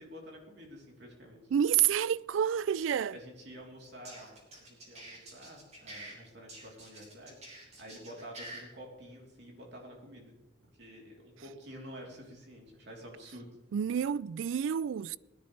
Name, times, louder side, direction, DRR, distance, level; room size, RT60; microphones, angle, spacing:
voice 1, 0.0-1.5 3.1-10.3 10.8-13.5, equal, 60° right, 3.4 m, -49 dB
voice 2, 1.5-3.2 13.7-15.2, right 9 dB, 85° right, 0.3 m, -29 dB
sound 1, 3.8-6.1 6.5-8.6, right 1 dB, 35° right, 3.4 m, -47 dB
19.5 x 10.5 x 3.3 m
head